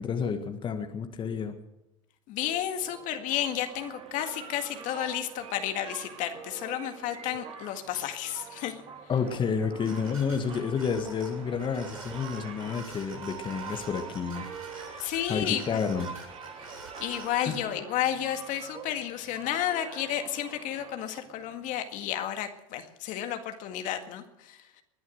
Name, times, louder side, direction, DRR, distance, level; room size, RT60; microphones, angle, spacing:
voice 1, 0.0-1.6 9.1-14.5 14.7-16.1 17.5-17.6, left 6 dB, 30° left, 6 dB, 1.7 m, -30 dB
voice 2, 2.3-8.8 15.0-15.8 16.6-24.8, left 11 dB, 50° left, 7 dB, 1.9 m, -32 dB
sound 1, 2.4-21.8, right 6 dB, 35° right, 2.9 m, -46 dB
sound 2, 9.8-17.5, right 3 dB, 90° right, 6.3 m, -46 dB
20.5 x 11.0 x 6.5 m, 0.90 s
hypercardioid pair, 90°, 17 cm